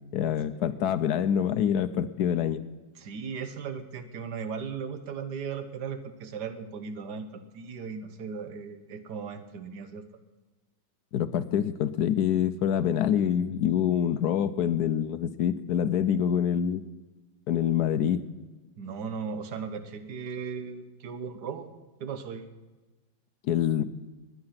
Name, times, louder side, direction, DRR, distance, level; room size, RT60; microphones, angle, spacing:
voice 1, 0.1-2.6 11.1-16.8 17.5-18.3 23.4-23.8, left 9 dB, 70° left, 13 dB, 1.0 m, -26 dB
voice 2, 3.0-10.0 18.8-22.4, right 6 dB, 60° right, 9 dB, 1.4 m, -37 dB
20.0 x 9.8 x 5.8 m, 1.2 s
omnidirectional pair, 2.2 m